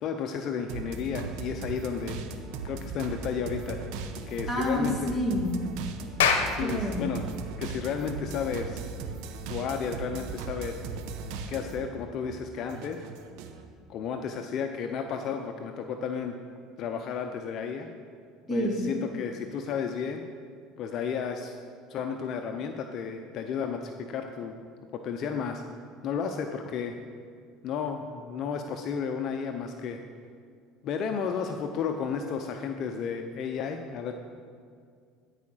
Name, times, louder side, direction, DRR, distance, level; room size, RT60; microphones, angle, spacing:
voice 1, 0.0-2.2 2.6-3.8 4.3-5.2 6.5-7.2 7.6-8.8 9.5-10.8 11.5-13.0 13.9-16.4 16.8-17.9 18.5-20.2 20.8-21.6 21.9-24.6 24.9-25.6 26.0-27.0 27.6-30.0 30.8-34.1, left 6 dB, 55° left, 5 dB, 0.6 m, -32 dB
sound 1, 0.7-11.9 12.2-13.6, right 5 dB, 70° right, 0.8 m, -38 dB
voice 2, 4.5-5.6 6.6-7.0 18.5-18.8, left 1 dB, 10° left, -2 dB, 2.3 m, -28 dB
Clapping, 6.0-10.9, left 6 dB, 85° left, 0.8 m, -31 dB
12.5 x 4.9 x 6.2 m, 2.2 s
hypercardioid pair, 85°, 0 cm